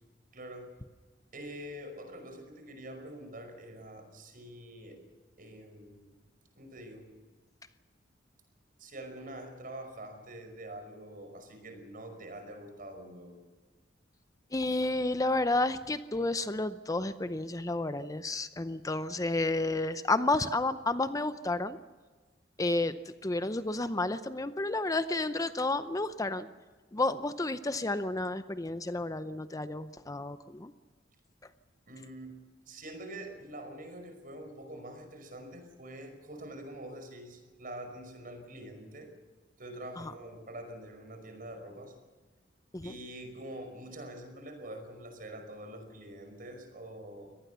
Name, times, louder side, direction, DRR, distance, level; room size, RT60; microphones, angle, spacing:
voice 1, 0.3-0.7 1.3-5.0 5.4-6.1 6.6-7.1 8.8-13.4 31.9-32.3 32.7-39.1 39.6-41.9 42.8-47.3, right 1 dB, 50° right, 6 dB, 5.4 m, -45 dB
voice 2, 14.5-21.8 22.6-22.9 23.2-26.5 26.9-30.7 40.0-40.1 42.7-42.9, left 2 dB, 20° left, 12 dB, 0.6 m, -31 dB
24.0 x 18.5 x 7.0 m, 1.4 s
head